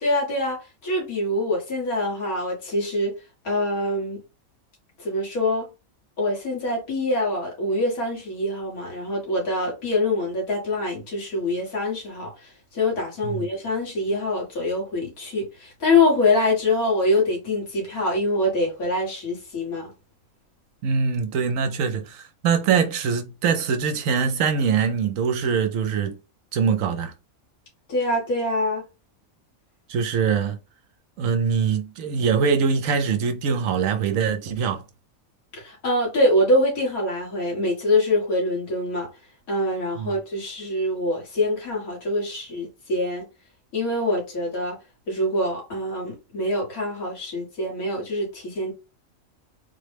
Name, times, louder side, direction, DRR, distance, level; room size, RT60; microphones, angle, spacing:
voice 1, 0.0-3.1 3.4-4.2 5.0-5.7 6.2-19.9 27.9-28.8 35.5-39.1 39.5-43.2 43.7-44.8 45.1-48.7, left 1 dB, 80° left, 2.0 m, -24 dB
voice 2, 20.8-26.2 26.5-27.1 29.9-30.6 31.2-34.8 40.0-40.1, right 6 dB, 70° right, 1.0 m, -23 dB
3.8 x 2.1 x 3.3 m
omnidirectional pair, 1.5 m